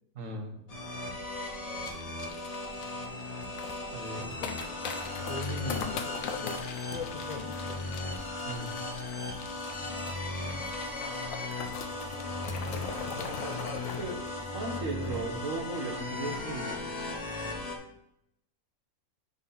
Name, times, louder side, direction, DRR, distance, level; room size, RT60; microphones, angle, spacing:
voice 1, 0.2-0.5 3.9-4.3 5.1-5.3 8.4-8.7 13.2-16.9, right 3 dB, 60° right, 4 dB, 1.4 m, -38 dB
sound 1, 0.7-17.8, left 2 dB, 30° left, 1.0 m, -36 dB
sound 2, 1.9-15.7 15.9-16.0 16.3-16.6 17.0-17.1, left 6 dB, 65° left, 1.0 m, -43 dB
voice 2, 4.2-4.8 5.1-8.0 9.8-10.2 12.8-13.7, left 4 dB, 85° left, 2 dB, 0.3 m, -41 dB
9.7 x 4.2 x 4.0 m, 0.81 s
omnidirectional pair, 1.6 m